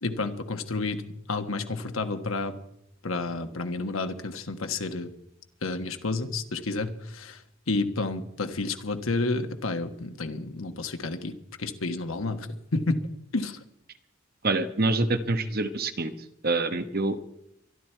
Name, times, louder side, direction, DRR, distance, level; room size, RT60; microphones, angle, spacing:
voice 1, 0.0-1.0 1.3-2.5 3.0-5.1 5.6-7.4 7.7-13.0 13.3-13.6, left 3 dB, 90° left, 7 dB, 1.4 m, -30 dB
voice 2, 14.4-16.1 16.4-17.2, right 2 dB, 50° right, 8 dB, 1.2 m, -26 dB
24.0 x 11.5 x 4.6 m, 0.78 s
head